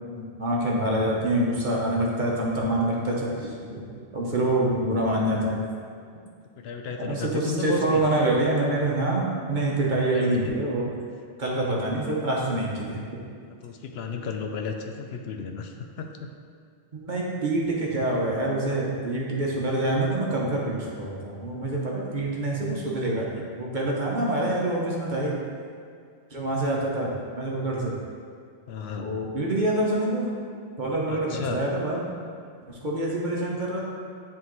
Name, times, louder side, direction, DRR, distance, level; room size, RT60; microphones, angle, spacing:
voice 1, 0.1-3.8 4.1-5.6 7.0-9.2 9.5-10.9 11.4-13.0 16.9-25.4 26.3-27.9 29.0-30.3 30.8-32.1 32.7-33.8, right 1 dB, 50° right, -3 dB, 1.1 m, -26 dB
voice 2, 6.6-8.0 10.1-10.5 13.6-16.3 28.7-29.1 31.1-31.6, left 5 dB, 70° left, 4 dB, 0.8 m, -33 dB
9.6 x 3.7 x 3.1 m, 2.3 s
omnidirectional pair, 1.1 m